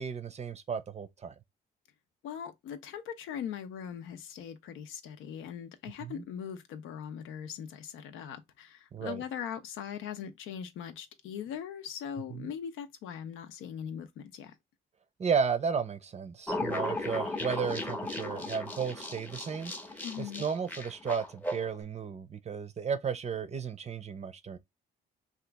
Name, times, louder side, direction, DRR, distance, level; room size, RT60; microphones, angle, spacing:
voice 1, 0.0-1.3 6.0-6.2 8.9-9.2 12.3-12.5 15.2-24.6, right 6 dB, 35° right, 0.5 m, -34 dB
voice 2, 2.2-14.5 20.0-20.5, left 8 dB, 90° left, 0.6 m, -40 dB
sound 1, 16.5-21.7, left 1 dB, 10° left, 0.6 m, -36 dB
2.9 x 2.4 x 3.4 m
cardioid pair, 90°, 20 cm